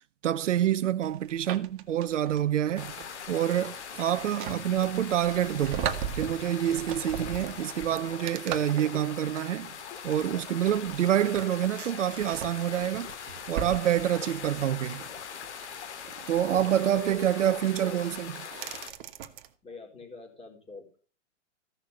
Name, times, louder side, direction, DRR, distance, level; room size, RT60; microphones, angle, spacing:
voice 1, 0.0-2.9 3.3-9.7 10.0-13.1 13.5-15.0 16.3-18.3, right 11 dB, 80° right, 0.8 m, -27 dB
sound 1, 1.0-19.5, right 9 dB, 45° right, 1.4 m, -40 dB
sound 2, 2.8-18.9, left 8 dB, 65° left, 2.3 m, -42 dB
voice 2, 16.4-18.0 19.6-21.0, left 3 dB, 15° left, 4.3 m, -46 dB
15.0 x 6.6 x 5.6 m
hypercardioid pair, 140°, 37 cm